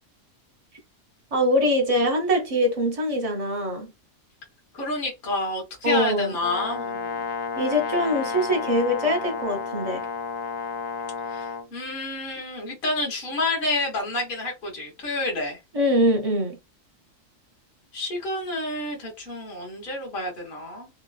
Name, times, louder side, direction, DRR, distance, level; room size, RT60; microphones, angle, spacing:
voice 1, 1.3-3.9 5.8-6.3 7.6-10.1 15.7-16.6, equal, 35° right, 0.6 m, -23 dB
voice 2, 4.7-7.2 11.3-15.6 17.9-20.9, left 2 dB, 45° left, 1.1 m, -29 dB
Brass instrument, 6.4-11.7, left 5 dB, 85° left, 1.0 m, -31 dB
3.0 x 2.2 x 2.3 m
omnidirectional pair, 1.4 m